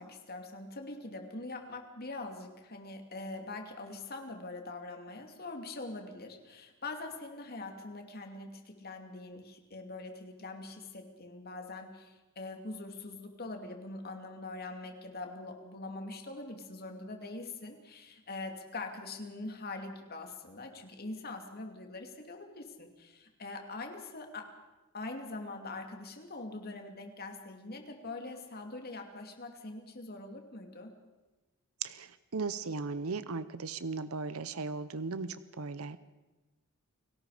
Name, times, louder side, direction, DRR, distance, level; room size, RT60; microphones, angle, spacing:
voice 1, 0.0-24.5 24.9-30.9, left 2 dB, 45° left, 4 dB, 2.7 m, -43 dB
voice 2, 31.8-36.0, right 4 dB, 90° right, 14 dB, 0.8 m, -37 dB
30.0 x 18.5 x 5.0 m, 1.2 s
head